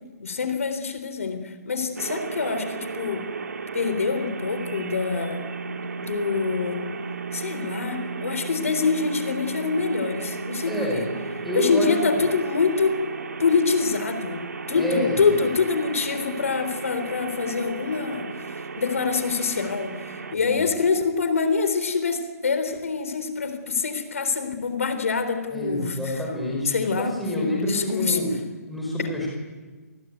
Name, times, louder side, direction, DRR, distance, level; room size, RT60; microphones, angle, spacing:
voice 1, 0.2-3.3 3.7-6.8 7.3-11.0 11.5-13.0 13.4-14.4 14.7-18.3 18.8-26.1 26.7-28.2, left 5 dB, 55° left, 9 dB, 3.9 m, -25 dB
sound 1, 2.0-20.3, right 4 dB, 70° right, 2.4 m, -34 dB
voice 2, 10.6-11.1 11.4-12.2 14.7-15.3 20.3-20.7 25.5-28.4 28.7-29.3, left 1 dB, ahead, -3 dB, 4.9 m, -27 dB
28.0 x 21.5 x 9.4 m, 1.4 s
hypercardioid pair, 175°, 9 cm